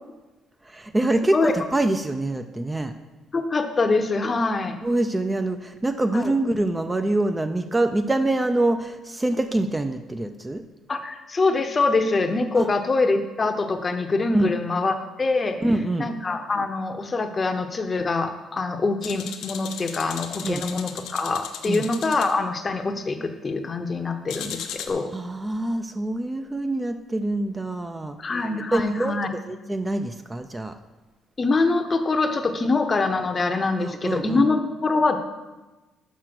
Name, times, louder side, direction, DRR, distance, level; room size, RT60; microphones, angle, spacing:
voice 1, 0.7-2.9 4.8-10.6 12.6-12.7 14.3-14.5 15.6-16.1 20.4-20.6 21.7-21.8 25.1-28.2 28.7-29.2 29.5-30.7 33.8-34.5, right 2 dB, 15° right, 8 dB, 0.4 m, -25 dB
voice 2, 3.3-4.8 6.1-6.3 10.9-15.6 16.0-25.1 28.2-29.3 31.4-35.2, left 3 dB, 30° left, 7 dB, 0.7 m, -24 dB
sound 1, 19.0-22.3 24.3-24.9, left 8 dB, 80° left, 0.7 m, -36 dB
6.3 x 5.6 x 6.0 m, 1.1 s
cardioid pair, 90°, 0 cm